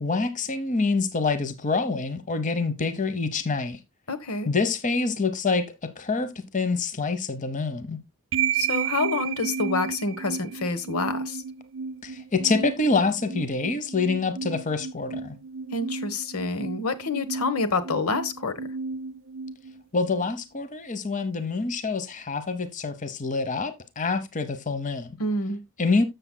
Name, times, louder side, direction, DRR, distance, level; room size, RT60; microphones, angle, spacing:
voice 1, 0.0-3.8 4.5-8.0 12.0-15.4 19.9-25.2 25.8-26.0, left 3 dB, 35° left, 0.9 m, -26 dB
voice 2, 4.1-4.5 8.5-11.4 15.7-18.5 25.2-25.6, left 3 dB, 85° left, 1.1 m, -27 dB
sound 1, 8.3-20.4, right 6 dB, 55° right, 0.4 m, -33 dB
13.5 x 6.8 x 2.2 m
head